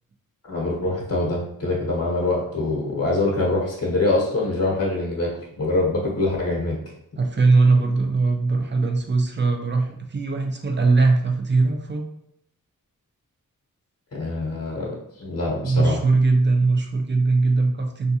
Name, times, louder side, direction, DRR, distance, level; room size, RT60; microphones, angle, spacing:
voice 1, 0.4-5.3 5.6-6.8 14.1-16.0, left 2 dB, 45° left, -4 dB, 0.9 m, -24 dB
voice 2, 7.2-12.0 15.6-18.2, right 3 dB, 30° right, 2 dB, 0.5 m, -20 dB
3.6 x 2.5 x 2.7 m, 0.72 s
wide cardioid pair, 85°, 34 cm